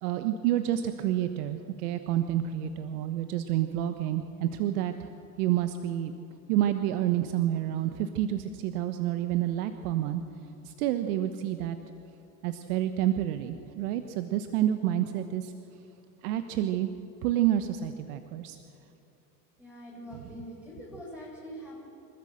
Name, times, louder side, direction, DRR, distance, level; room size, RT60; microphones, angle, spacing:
voice 1, 0.0-4.9 5.4-6.1 6.5-10.2 10.6-11.8 12.4-15.5 16.2-16.9 17.2-18.6 20.2-20.3, right 12 dB, 75° right, 9 dB, 1.2 m, -29 dB
voice 2, 19.6-21.8, equal, 5° right, -5 dB, 7.0 m, -43 dB
27.5 x 13.5 x 7.8 m, 2.7 s
hypercardioid pair, 85°, 46 cm